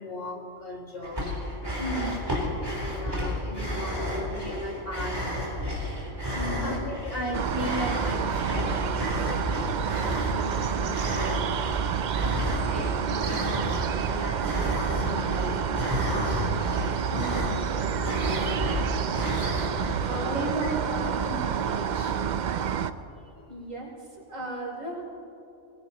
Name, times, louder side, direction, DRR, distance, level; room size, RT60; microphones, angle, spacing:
voice 1, 0.0-1.4 2.6-5.4 5.7-6.2 6.6-9.0 9.9-11.4 12.5-17.5 17.8-19.0 20.3-20.7 21.2-22.2 22.7-22.8, left 1 dB, 50° left, -2 dB, 2.5 m, -37 dB
sound 1, 1.0-20.3, left 1 dB, 20° right, 3.4 m, -32 dB
voice 2, 1.8-2.2 6.3-6.8 17.1-17.7 20.0-21.4 23.5-25.0, right 1 dB, 85° right, -3 dB, 3.6 m, -35 dB
sound 2, 7.3-22.9, right 8 dB, 65° right, 0.4 m, -29 dB
21.5 x 19.0 x 3.0 m, 3.0 s
omnidirectional pair, 1.3 m